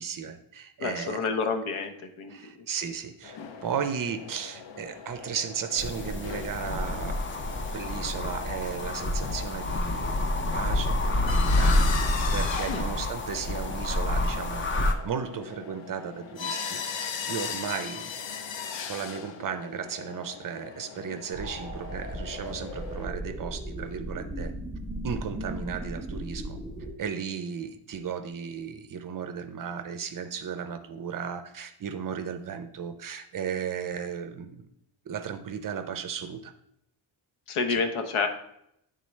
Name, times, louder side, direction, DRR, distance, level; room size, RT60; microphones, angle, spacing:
voice 1, 0.0-1.3 2.3-7.2 7.7-11.8 12.3-18.1 18.9-24.5 25.0-26.6 27.0-34.7 35.1-36.5 37.7-37.8, right 7 dB, 45° right, 9 dB, 0.5 m, -35 dB
voice 2, 0.8-2.4 12.7-12.8 37.5-38.3, left 5 dB, 85° left, 6 dB, 1.0 m, -29 dB
sound 1, 3.2-23.1, left 6 dB, 65° left, 0.6 m, -40 dB
sound 2, 5.8-14.9, left 1 dB, 25° left, 0.4 m, -27 dB
sound 3, 21.3-26.9, right 1 dB, 15° right, 1.1 m, -37 dB
9.6 x 3.7 x 3.2 m, 0.76 s
wide cardioid pair, 175°, 49 cm